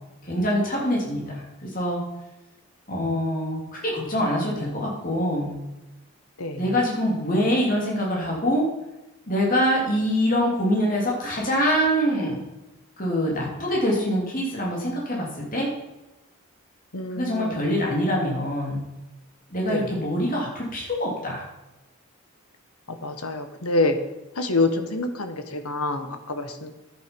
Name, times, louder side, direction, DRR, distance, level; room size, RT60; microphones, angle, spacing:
voice 1, 0.3-2.0 2.9-5.5 6.6-8.7 9.3-12.4 13.0-15.7 17.1-18.8 19.5-21.4, equal, 40° left, -3 dB, 3.1 m, -24 dB
voice 2, 6.4-6.7 16.9-17.7 19.7-19.9 22.9-24.0 24.4-26.7, left 2 dB, 85° left, 7 dB, 1.4 m, -27 dB
10.5 x 8.9 x 5.4 m, 1.0 s
head